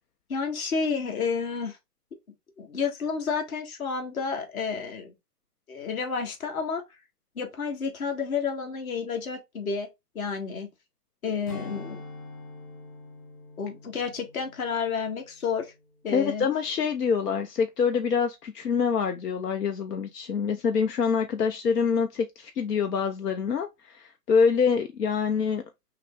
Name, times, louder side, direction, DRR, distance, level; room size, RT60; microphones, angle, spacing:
voice 1, 0.3-1.8 2.6-5.1 5.7-6.8 7.3-9.9 10.1-10.7 11.2-12.0 13.6-15.7 16.0-16.5, left 5 dB, 60° left, 1.6 m, -30 dB
Strum, 11.5-16.2 16.5-16.8, left 2 dB, 25° left, 0.6 m, -45 dB
voice 2, 16.1-25.6, left 6 dB, 75° left, 0.7 m, -25 dB
5.7 x 2.0 x 3.4 m
hypercardioid pair, 140°, 48 cm